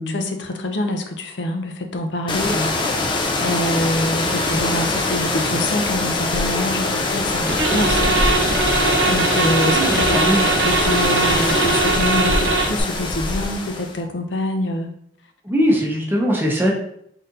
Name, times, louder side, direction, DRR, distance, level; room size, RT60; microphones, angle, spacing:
voice 1, 0.0-3.1 3.4-8.2 9.1-14.9, left 1 dB, 80° left, 5 dB, 0.5 m, -26 dB
sound 1, 2.3-14.0, left 2 dB, 25° left, 0.4 m, -23 dB
sound 2, 7.5-12.8, right 3 dB, 85° right, 0.8 m, -20 dB
voice 2, 9.7-10.4 15.4-16.7, equal, 15° right, -1 dB, 0.8 m, -20 dB
4.2 x 3.9 x 2.5 m, 0.69 s
head